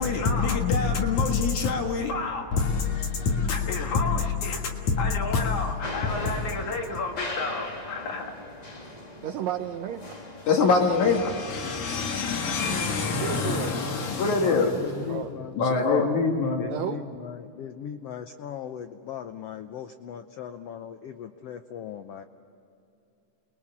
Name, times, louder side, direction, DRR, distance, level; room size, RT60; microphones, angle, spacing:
voice 1, 0.0-8.3 10.5-15.1 15.5-16.8, left 4 dB, 65° left, 3.0 m, -26 dB
sound 1, 5.8-11.1, left 2 dB, 30° left, 0.7 m, -39 dB
voice 2, 9.2-10.1 13.2-13.8 14.9-15.3 16.7-17.0, right 10 dB, 75° right, 1.7 m, -32 dB
voice 3, 14.4-15.7 16.6-22.2, left 9 dB, 85° left, 1.4 m, -38 dB
29.0 x 22.0 x 7.3 m
omnidirectional pair, 3.8 m